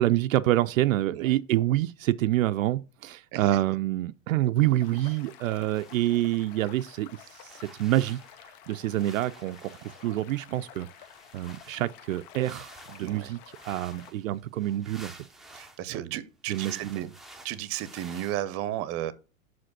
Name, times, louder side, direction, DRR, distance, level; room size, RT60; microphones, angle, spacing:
voice 1, 0.0-10.9 11.3-13.4 13.6-15.1 15.9-16.1 16.5-17.1, right 14 dB, 75° right, 0.6 m, -27 dB
sound 1, 4.8-14.1, left 10 dB, 50° left, 1.0 m, -51 dB
sound 2, 5.7-6.2 7.3-8.4 8.9-10.2 10.9-15.8 16.5-18.4, right 1 dB, ahead, 0.7 m, -50 dB
voice 2, 13.0-13.3 15.5-17.1 17.4-19.1, right 13 dB, 35° right, 0.8 m, -34 dB
5.7 x 5.1 x 6.0 m
hypercardioid pair, 120°, 41 cm